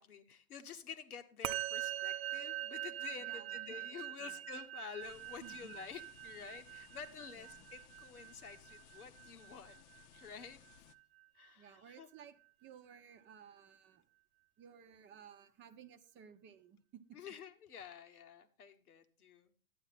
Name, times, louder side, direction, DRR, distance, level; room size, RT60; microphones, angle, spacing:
voice 1, 0.0-9.8 10.1-10.6 11.3-12.1 17.1-19.5, left 7 dB, 90° left, 7 dB, 1.1 m, -50 dB
Musical instrument, 1.4-11.0, right 14 dB, 70° right, 0.8 m, -43 dB
voice 2, 3.2-4.4 5.4-5.8 7.4-7.7 11.6-12.3 12.6-14.1 14.6-17.2 18.1-18.2, right 8 dB, 25° right, 10 dB, 0.7 m, -57 dB
sound 1, 5.0-10.9, left 11 dB, 55° left, 0.8 m, -62 dB
11.0 x 8.8 x 4.1 m, 0.39 s
hypercardioid pair, 115°, 43 cm